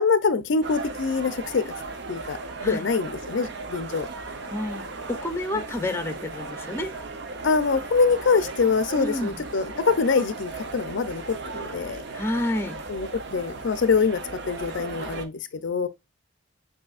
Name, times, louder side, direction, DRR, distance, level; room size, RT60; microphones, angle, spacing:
voice 1, 0.0-1.7 2.1-2.4 2.6-4.1 5.5-5.6 7.4-12.0 12.9-14.2 14.5-15.9, left 5 dB, 65° left, 0.5 m, -24 dB
sound 1, 0.6-15.2, right 3 dB, 60° right, 0.7 m, -37 dB
voice 2, 4.5-6.9 9.0-9.3 12.1-12.8, left 1 dB, 10° left, 0.6 m, -29 dB
7.2 x 2.7 x 2.3 m
head